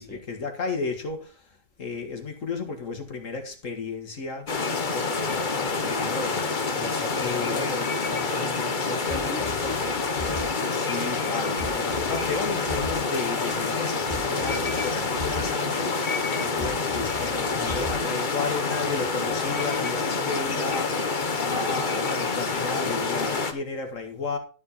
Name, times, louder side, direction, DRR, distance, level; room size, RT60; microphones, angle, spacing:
voice 1, 0.0-4.5 4.9-6.7 7.1-7.9 10.7-24.4, left 4 dB, 80° left, 2.1 m, -33 dB
sound 1, 4.5-23.5, left 4 dB, 40° left, 1.3 m, -27 dB
voice 2, 6.7-7.8 8.1-9.9 14.2-14.5 17.5-18.1 18.8-19.0, left 1 dB, 5° left, 3.0 m, -38 dB
sound 2, 9.1-19.1, left 1 dB, 35° right, 4.9 m, -39 dB
12.0 x 7.6 x 4.2 m
omnidirectional pair, 1.3 m